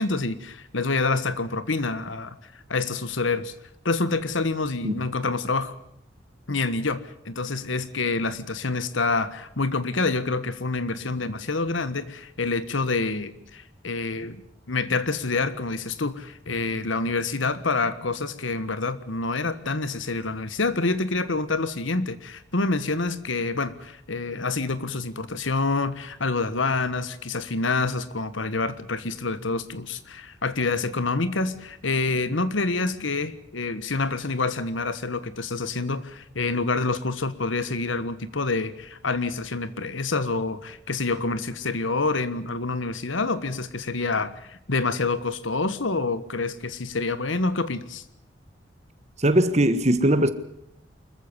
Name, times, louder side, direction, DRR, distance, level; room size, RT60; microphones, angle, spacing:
voice 1, 0.0-2.3 2.7-3.5 3.8-5.7 6.5-14.4 14.7-48.0, left 3 dB, 80° left, 1.5 m, -27 dB
voice 2, 49.2-50.3, right 1 dB, 35° right, 1.5 m, -20 dB
25.0 x 14.5 x 9.7 m
head